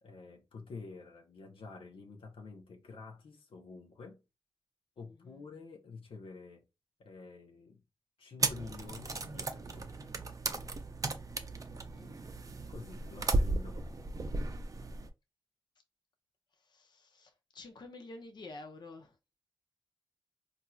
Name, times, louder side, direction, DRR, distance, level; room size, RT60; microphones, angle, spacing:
voice 1, 0.0-4.2 5.0-6.6 7.0-7.8 8.2-9.9 12.7-14.0, left 4 dB, 85° left, 0.7 m, -49 dB
voice 2, 5.0-5.5 11.9-12.5 16.5-19.2, left 2 dB, 55° left, 0.6 m, -50 dB
sound 1, 8.4-15.1, right 2 dB, 40° right, 0.5 m, -35 dB
4.2 x 2.6 x 2.3 m
wide cardioid pair, 85°, 9 cm